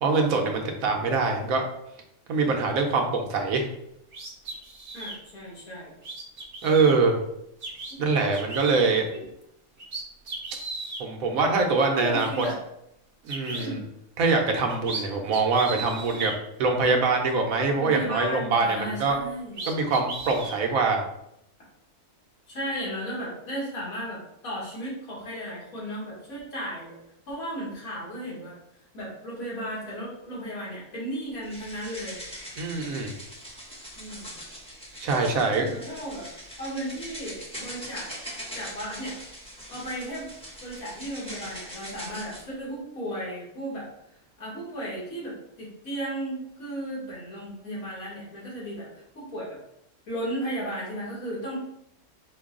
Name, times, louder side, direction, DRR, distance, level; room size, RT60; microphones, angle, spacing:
voice 1, 0.0-1.6 2.3-3.7 6.6-7.2 8.0-9.1 11.0-12.5 13.2-13.8 14.2-16.3 16.6-19.2 19.7-21.0 32.6-33.1 35.0-35.7, right 4 dB, 70° right, 3 dB, 1.1 m, -24 dB
sound 1, 4.1-5.2 6.0-7.0 7.6-7.9 8.3-8.9 9.4-9.5 9.8-11.0 11.8-11.9 12.2-12.5 13.3-13.7 14.5-15.0 15.3-16.4 19.1-19.2 19.5-20.6, right 3 dB, 45° right, 0.9 m, -36 dB
voice 2, 4.9-5.9 7.9-8.1 9.1-9.2 11.6-12.6 13.6-13.8 17.7-19.7 22.5-27.0 27.3-28.6 28.9-32.2 34.0-34.3 35.3-36.3 36.6-38.1 38.5-39.2 39.7-40.3 40.6-43.9 44.4-48.9 49.1-49.6 50.1-51.6, equal, 70° left, -6 dB, 2.1 m, -35 dB
sound 2, 31.4-42.4, equal, 5° left, 0.7 m, -42 dB
5.1 x 2.3 x 3.6 m, 0.79 s
omnidirectional pair, 1.5 m